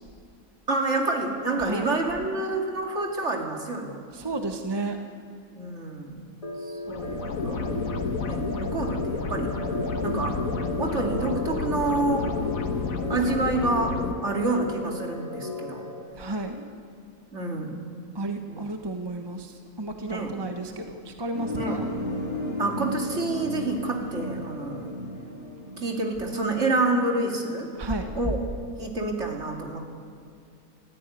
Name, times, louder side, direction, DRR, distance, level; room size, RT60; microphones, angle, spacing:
voice 1, 0.7-4.0 5.5-6.2 6.6-7.7 8.2-9.5 10.0-10.4 10.8-12.3 13.1-15.9 17.3-17.7 18.5-18.6 20.0-20.5 21.5-21.8 22.6-25.0 25.8-27.7 28.1-28.4 28.8-29.8, right 2 dB, 55° right, 1 dB, 2.9 m, -28 dB
voice 2, 4.1-5.0 16.2-16.6 18.1-19.5 19.8-21.9 27.8-28.1, right 2 dB, 20° right, 5 dB, 1.3 m, -32 dB
sound 1, 6.4-16.0, left 2 dB, 25° left, 2.9 m, -36 dB
sound 2, 6.9-14.1, left 4 dB, 80° left, 1.7 m, -30 dB
sound 3, 21.3-26.0, left 1 dB, 45° left, 5.1 m, -33 dB
25.0 x 14.0 x 9.4 m, 2.3 s
omnidirectional pair, 1.4 m